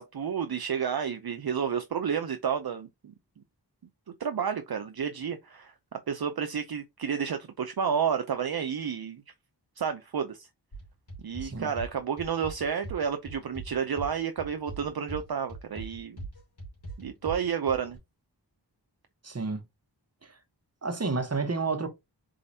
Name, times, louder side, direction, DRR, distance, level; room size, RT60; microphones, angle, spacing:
voice 1, 0.0-3.1 4.2-9.2 9.8-10.5 11.2-16.2 17.0-18.0, right 7 dB, 60° right, 0.5 m, -31 dB
sound 1, 10.7-18.0, right 2 dB, 65° left, 2.6 m, -41 dB
voice 2, 11.4-11.7 19.2-19.6 20.2-20.4 20.8-21.9, right 4 dB, 35° right, 1.0 m, -30 dB
4.1 x 3.8 x 2.7 m
wide cardioid pair, 50°, 42 cm